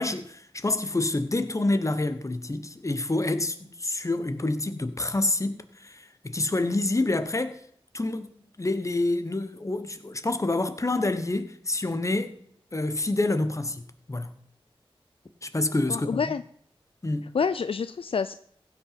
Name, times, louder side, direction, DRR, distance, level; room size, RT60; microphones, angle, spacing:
voice 1, 0.0-7.6 7.9-8.3 8.6-12.3 12.7-13.8 14.1-14.3 15.4-16.2 17.0-17.3, left 2 dB, 30° left, 1.2 m, -27 dB
voice 2, 15.9-16.4 17.3-18.3, left 6 dB, 65° left, 0.4 m, -27 dB
15.5 x 6.1 x 5.8 m
wide cardioid pair, 55°, 10 cm